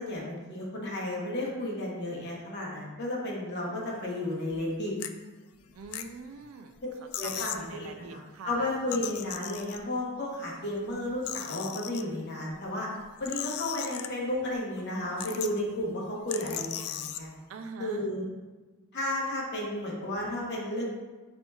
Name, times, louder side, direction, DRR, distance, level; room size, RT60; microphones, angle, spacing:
voice 1, 0.0-4.9 6.8-6.9 7.2-12.9 13.2-17.3 17.8-18.2 18.9-20.8, left 1 dB, 55° left, -4 dB, 1.2 m, -33 dB
sound 1, 4.4-4.6 5.0-5.1 5.7-6.4 6.8-6.9 7.1-7.7 8.7-10.0 10.7-12.0 13.0-14.4 14.8-14.9 15.2-15.7 16.3-17.2, left 11 dB, 85° left, 0.3 m, -37 dB
voice 2, 5.7-8.7 17.5-18.1, right 4 dB, 65° right, 7 dB, 0.4 m, -44 dB
4.5 x 4.2 x 2.8 m, 1.3 s
head